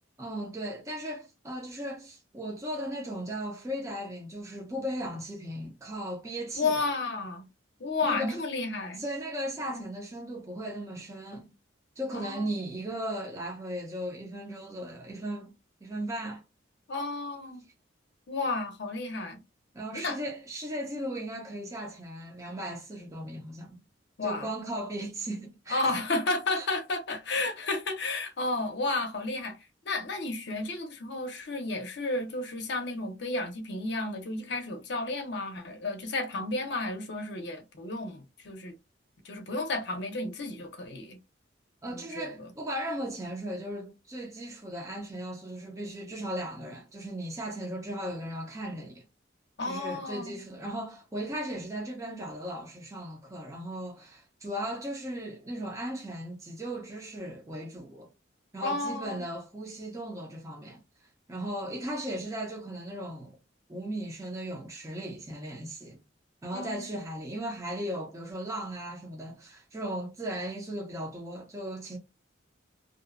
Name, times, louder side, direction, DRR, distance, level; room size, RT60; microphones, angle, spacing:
voice 1, 0.2-6.9 8.0-8.4 9.0-11.5 12.0-15.5 15.8-16.4 19.7-23.8 24.2-25.9 26.6-26.7 41.8-49.0 49.6-58.1 58.5-60.8 61.3-63.4 63.7-66.0 66.4-72.0, right 1 dB, 15° right, 0.5 m, -37 dB
voice 2, 6.6-7.5 7.8-9.0 9.6-9.9 12.1-12.5 16.9-17.6 18.3-19.4 19.9-20.2 24.2-24.5 25.7-29.6 29.8-38.7 39.2-41.2 41.9-42.5 49.6-50.4 58.6-59.2 66.5-67.0, left 2 dB, 60° left, 0.6 m, -32 dB
2.6 x 2.1 x 2.4 m
head